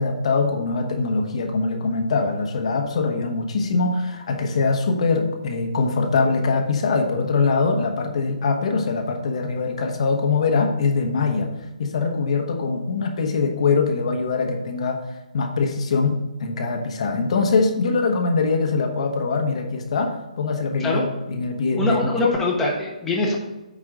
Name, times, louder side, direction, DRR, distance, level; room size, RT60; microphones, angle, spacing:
voice 1, 0.0-11.5 11.8-15.0 15.3-22.0 22.2-22.3, left 4 dB, 55° left, 3 dB, 1.3 m, -22 dB
voice 2, 21.8-23.4, left 2 dB, 5° left, -4 dB, 1.3 m, -23 dB
9.1 x 4.8 x 3.8 m, 1.1 s
hypercardioid pair, 155°, 4 cm